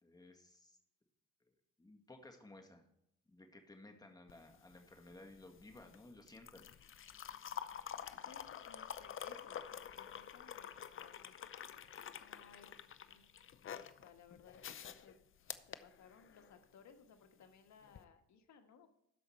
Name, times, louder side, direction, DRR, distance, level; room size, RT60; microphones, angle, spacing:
voice 1, 0.0-0.8 1.8-2.8 3.3-6.7, left 2 dB, 15° left, 3 dB, 1.8 m, -57 dB
sound 1, 4.3-16.6 17.8-18.0, left 9 dB, 45° left, 0.6 m, -49 dB
voice 2, 8.1-11.3 12.2-12.7 13.1-13.2 13.7-15.2 15.7-18.9, left 6 dB, 65° left, 6 dB, 1.5 m, -61 dB
13.0 x 5.1 x 4.4 m, 0.79 s
cardioid pair, 90°, 30 cm